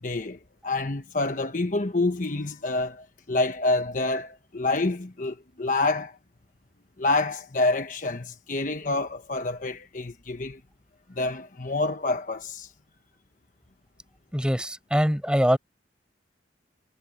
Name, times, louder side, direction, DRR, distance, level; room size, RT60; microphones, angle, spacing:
voice 1, 0.0-6.2 7.0-10.6 11.1-12.7, left 2 dB, 45° left, 1.1 m, -27 dB
voice 2, 14.3-15.6, equal, 5° right, 4.8 m, -23 dB
head